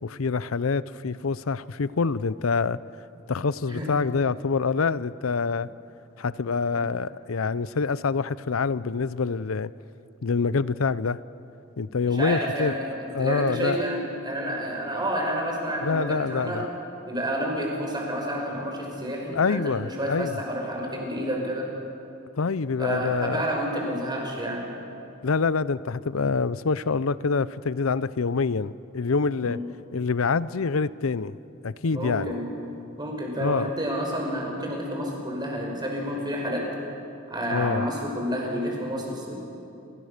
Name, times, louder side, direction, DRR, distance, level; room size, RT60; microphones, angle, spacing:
voice 1, 0.0-2.8 3.3-5.7 6.2-9.7 10.2-11.2 11.8-12.8 13.1-13.8 15.8-16.7 19.3-20.3 22.4-23.4 25.2-29.6 29.9-31.4 31.6-32.4 33.4-33.7 37.5-37.9, left 4 dB, 85° left, 17 dB, 0.6 m, -26 dB
voice 2, 12.0-16.6 17.1-21.7 22.8-24.7 29.3-29.6 31.9-32.5 33.0-36.6 37.3-39.3, equal, 20° right, 0 dB, 5.4 m, -29 dB
28.5 x 23.0 x 6.7 m, 2.7 s
head